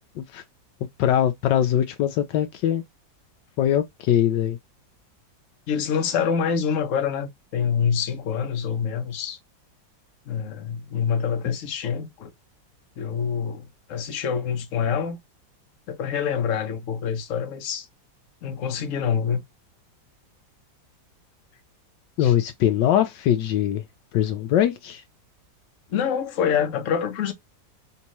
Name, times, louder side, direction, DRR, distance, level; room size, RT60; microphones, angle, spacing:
voice 1, 1.0-2.8 3.6-4.6 22.2-23.8 24.1-25.0, left 11 dB, 75° left, 1.2 m, -22 dB
voice 2, 5.7-9.4 10.3-12.3 13.0-15.2 15.9-17.9 18.4-19.4 22.2-22.3 25.9-27.3, left 7 dB, 55° left, 1.0 m, -26 dB
4.5 x 2.8 x 3.0 m
omnidirectional pair, 2.0 m